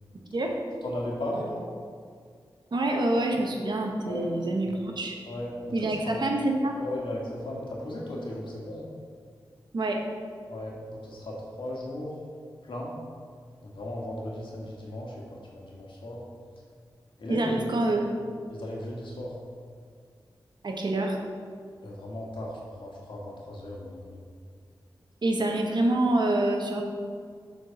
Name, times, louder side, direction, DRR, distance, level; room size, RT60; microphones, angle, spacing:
voice 1, 0.8-1.6 4.1-4.3 4.6-4.7 5.3-6.2 6.8-8.9 10.5-12.1 12.7-12.9 13.6-16.2 17.2-17.7 18.5-19.3 21.8-24.2, left 1 dB, 75° left, -3 dB, 1.8 m, -36 dB
voice 2, 2.7-5.1 5.7-6.7 9.7-10.0 17.3-18.1 20.6-21.2 25.2-26.8, right 2 dB, 60° right, 1 dB, 1.1 m, -26 dB
7.1 x 4.6 x 5.9 m, 2.1 s
cardioid pair, 65°, 9 cm